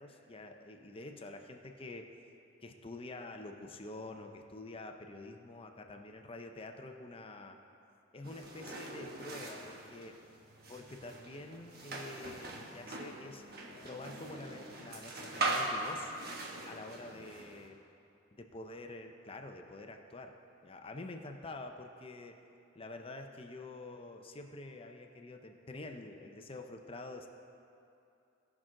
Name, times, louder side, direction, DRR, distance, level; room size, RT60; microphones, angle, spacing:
voice 1, 0.0-2.1 2.6-7.6 8.1-10.2 10.7-13.4 13.8-16.1 16.7-17.8 18.5-20.3 20.6-22.4 22.7-27.3, left 2 dB, 30° left, 5 dB, 0.6 m, -47 dB
sound 1, 8.2-17.7, right 2 dB, 55° right, 1.1 m, -41 dB
16.5 x 6.0 x 3.8 m, 2.7 s
head